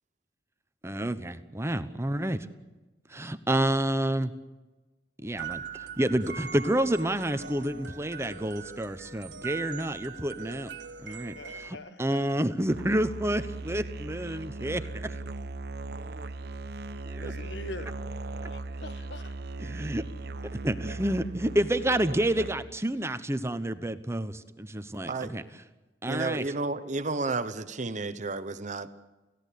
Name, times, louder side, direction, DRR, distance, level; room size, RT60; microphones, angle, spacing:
voice 1, 0.8-2.5 3.1-4.3 5.2-10.7 11.0-11.3 11.6-15.1 17.1-17.3 19.6-20.1 20.6-25.4 26.0-26.4, right 1 dB, 15° right, 11 dB, 1.0 m, -29 dB
sound 1, 5.3-11.7, right 7 dB, 85° right, 1.6 m, -41 dB
voice 2, 11.0-12.4 17.2-17.9 18.4-19.3 25.2-25.5, left 2 dB, 80° left, 11 dB, 1.6 m, -44 dB
Musical instrument, 12.7-22.8, right 3 dB, 65° right, 0.9 m, -38 dB
voice 3, 26.1-28.9, right 3 dB, 45° right, 11 dB, 1.0 m, -32 dB
29.0 x 16.5 x 8.5 m, 1.1 s
head